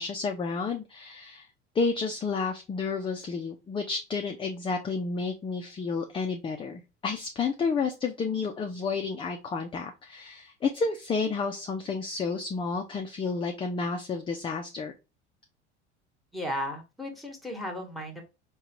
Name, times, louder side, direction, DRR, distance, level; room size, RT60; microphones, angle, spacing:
voice 1, 0.0-1.5 1.7-14.9, left 4 dB, 15° left, 4 dB, 0.3 m, -31 dB
voice 2, 16.3-18.3, equal, ahead, 4 dB, 1.1 m, -35 dB
3.6 x 2.2 x 2.8 m, 0.27 s
hypercardioid pair, 75°, 35 cm